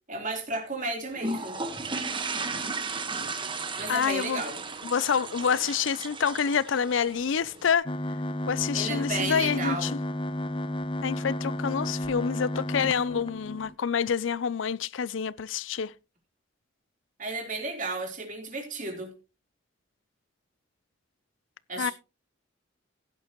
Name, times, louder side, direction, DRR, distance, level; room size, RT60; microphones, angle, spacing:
voice 1, 0.1-1.6 3.8-4.6 8.7-9.9 17.2-19.1 21.7-21.9, right 3 dB, 40° right, 3.9 m, -33 dB
sound 1, 1.2-7.7, right 3 dB, 25° right, 1.3 m, -35 dB
voice 2, 3.9-4.4 4.8-7.9 8.5-10.0 11.0-15.9 21.8-21.9, left 7 dB, 80° left, 0.5 m, -27 dB
sound 2, 7.9-13.8, left 1 dB, 25° left, 0.6 m, -32 dB
16.5 x 9.1 x 3.0 m
head